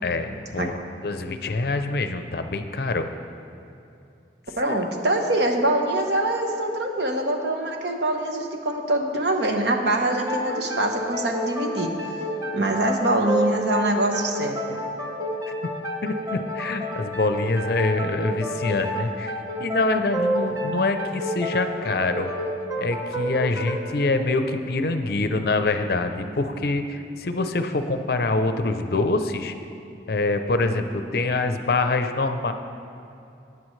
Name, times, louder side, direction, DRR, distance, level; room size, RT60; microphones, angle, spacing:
voice 1, 0.0-3.1 4.7-4.8 16.0-19.3 19.6-22.3 22.8-29.5 30.1-32.5, left 2 dB, 55° left, 8 dB, 0.5 m, -25 dB
voice 2, 4.6-12.2 12.5-14.8, right 1 dB, 70° right, 3 dB, 1.0 m, -24 dB
sound 1, 10.0-25.4, equal, 20° right, 0.9 m, -30 dB
13.5 x 9.5 x 3.2 m, 2.7 s
head